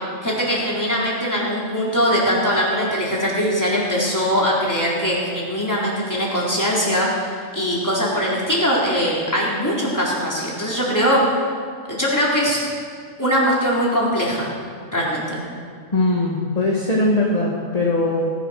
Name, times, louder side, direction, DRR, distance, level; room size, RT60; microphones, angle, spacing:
voice 1, 0.2-11.2 11.9-12.6 13.2-14.5 14.9-15.4, equal, 15° left, -5 dB, 3.9 m, -21 dB
voice 2, 15.9-18.3, left 2 dB, 30° left, -3 dB, 2.0 m, -20 dB
19.0 x 11.0 x 6.5 m, 2.1 s
omnidirectional pair, 1.3 m